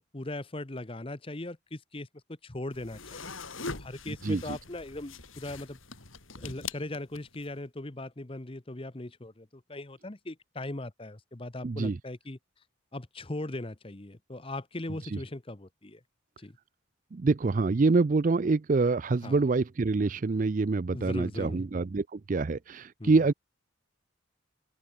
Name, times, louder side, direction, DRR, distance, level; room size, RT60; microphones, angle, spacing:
voice 1, 0.0-2.1 2.4-5.8 6.4-12.4 12.9-16.0 16.4-16.6 19.2-19.4 20.9-21.6 23.0-23.3, left 2 dB, 25° left, 0.9 m, -39 dB
sound 1, 2.7-7.5, left 4 dB, 75° left, 4.8 m, -42 dB
voice 2, 11.6-12.0 17.1-23.3, right 3 dB, 40° right, 0.4 m, -26 dB
head